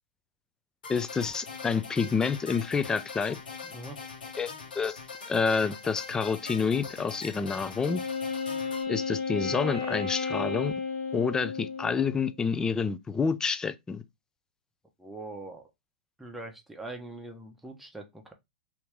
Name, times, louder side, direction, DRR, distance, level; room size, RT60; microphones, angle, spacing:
sound 1, 0.8-8.8, left 5 dB, 85° left, 1.1 m, -42 dB
voice 1, 0.9-3.4 4.4-5.0 5.3-8.0 8.9-10.7 11.1-14.0, left 5 dB, 15° left, 0.4 m, -28 dB
voice 2, 3.6-4.0 15.0-15.7 16.2-18.3, right 2 dB, 5° right, 1.0 m, -42 dB
Wind instrument woodwind instrument, 7.8-12.4, left 5 dB, 55° left, 1.4 m, -33 dB
2.9 x 2.8 x 3.5 m
hypercardioid pair, 115°, 5 cm